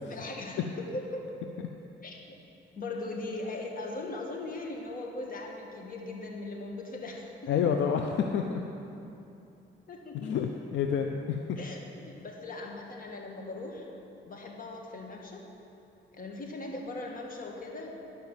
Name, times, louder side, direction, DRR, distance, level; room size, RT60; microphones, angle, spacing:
voice 1, 0.0-1.4 2.0-2.4 2.7-7.7 9.9-10.3 11.6-13.9 14.2-15.4 16.1-18.0, left 2 dB, 45° left, 0 dB, 1.7 m, -39 dB
voice 2, 7.5-8.6 10.1-11.6, left 7 dB, 75° left, 4 dB, 0.6 m, -29 dB
11.0 x 5.4 x 7.3 m, 2.8 s
cardioid pair, 90°, 20 cm